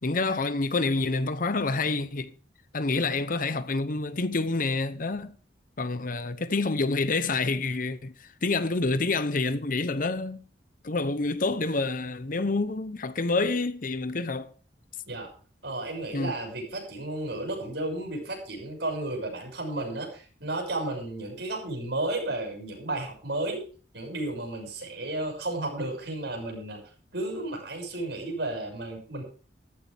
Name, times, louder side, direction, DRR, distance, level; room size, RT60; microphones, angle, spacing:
voice 1, 0.0-2.3 2.7-5.3 5.8-8.1 8.4-10.4 10.8-14.5 16.1-16.3, left 3 dB, 45° left, 0.8 m, -27 dB
voice 2, 15.6-23.6 23.9-26.8 27.1-29.2, right 2 dB, 65° right, 6.6 m, -33 dB
14.0 x 14.0 x 3.5 m
head